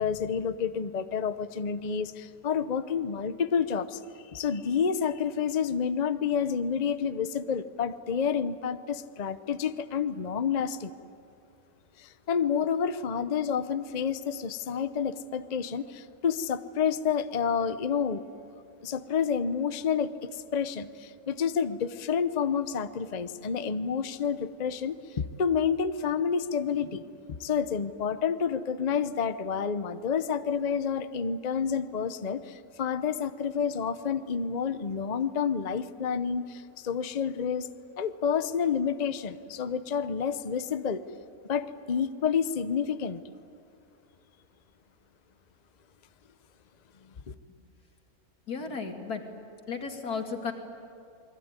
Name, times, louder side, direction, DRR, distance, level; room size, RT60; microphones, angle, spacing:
voice 1, 0.0-10.9 12.0-18.2 18.8-37.7 38.0-41.0 41.5-43.2 47.3-47.4, left 7 dB, 35° left, 12 dB, 0.7 m, -29 dB
voice 2, 48.5-49.3 49.7-50.5, left 5 dB, 90° left, 3 dB, 3.0 m, -34 dB
28.5 x 22.0 x 9.7 m, 2.5 s
omnidirectional pair, 1.6 m